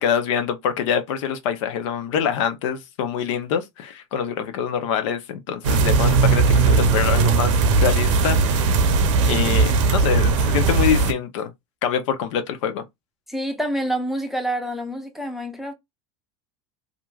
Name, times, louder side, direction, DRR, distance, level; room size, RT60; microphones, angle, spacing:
voice 1, 0.0-8.7 9.3-11.5 11.8-12.8, left 8 dB, 75° left, 0.7 m, -25 dB
sound 1, 5.6-11.1, right 4 dB, 80° right, 0.6 m, -18 dB
voice 2, 13.3-15.7, right 1 dB, ahead, 0.6 m, -27 dB
2.9 x 2.5 x 2.3 m
supercardioid pair, 115°, 16 cm